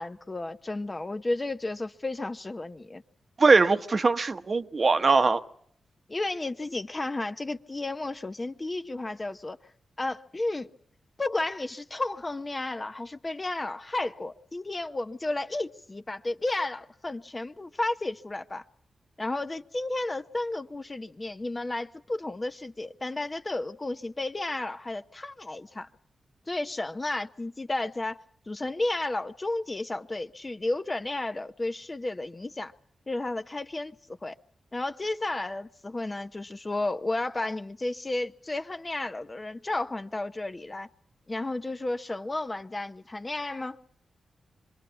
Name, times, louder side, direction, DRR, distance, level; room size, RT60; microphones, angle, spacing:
voice 1, 0.0-3.0 6.1-9.6 10.0-10.7 11.2-18.6 19.2-25.9 26.5-32.7 33.1-34.3 34.7-40.9 41.3-43.8, left 2 dB, 25° left, 0.9 m, -32 dB
voice 2, 3.4-5.4, right 4 dB, 45° right, 1.2 m, -21 dB
26.0 x 20.5 x 7.1 m
cardioid pair, 75°, 0 cm